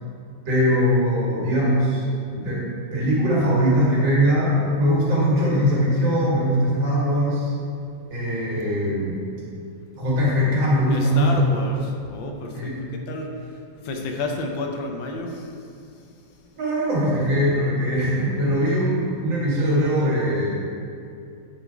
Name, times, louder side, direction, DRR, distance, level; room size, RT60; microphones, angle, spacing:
voice 1, 0.4-2.0 2.3-7.5 8.1-9.2 9.9-11.6 12.5-12.7 16.6-20.5, equal, 80° right, -7 dB, 2.8 m, -21 dB
voice 2, 10.9-11.8 12.1-13.3 13.8-15.3, left 3 dB, 85° left, 2 dB, 1.6 m, -30 dB
9.2 x 4.1 x 4.5 m, 2.5 s
omnidirectional pair, 2.0 m